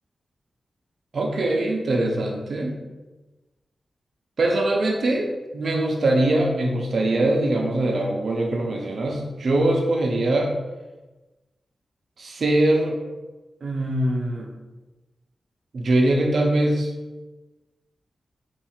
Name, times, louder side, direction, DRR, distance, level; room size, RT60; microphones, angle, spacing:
voice 1, 1.1-2.8 4.4-10.5 12.2-13.0 13.6-14.5 15.7-16.9, right 1 dB, 60° right, 1 dB, 0.5 m, -22 dB
3.6 x 2.4 x 4.3 m, 1.2 s
wide cardioid pair, 130°, 0 cm